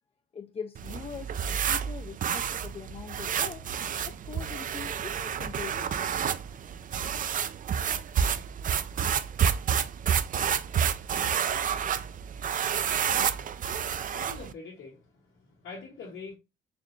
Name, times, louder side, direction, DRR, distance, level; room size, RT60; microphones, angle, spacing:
voice 1, 0.3-3.6 4.1-6.1, left 6 dB, 30° left, 0.4 m, -42 dB
sound 1, 0.7-14.5, right 8 dB, 45° right, 0.4 m, -29 dB
voice 2, 14.1-16.4, left 4 dB, 75° left, 1.6 m, -44 dB
4.2 x 3.1 x 3.1 m
cardioid pair, 90°, 20 cm